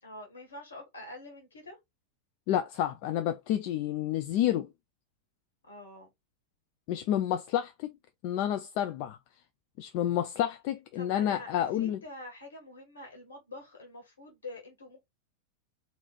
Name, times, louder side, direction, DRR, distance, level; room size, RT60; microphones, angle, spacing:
voice 1, 0.0-1.8 5.7-6.1 10.9-15.0, left 2 dB, 70° left, 1.6 m, -46 dB
voice 2, 2.5-4.7 6.9-7.9 8.2-9.2 9.8-12.0, left 11 dB, 45° left, 0.5 m, -29 dB
4.0 x 2.8 x 4.2 m
figure-of-eight pair, 90°, 0 cm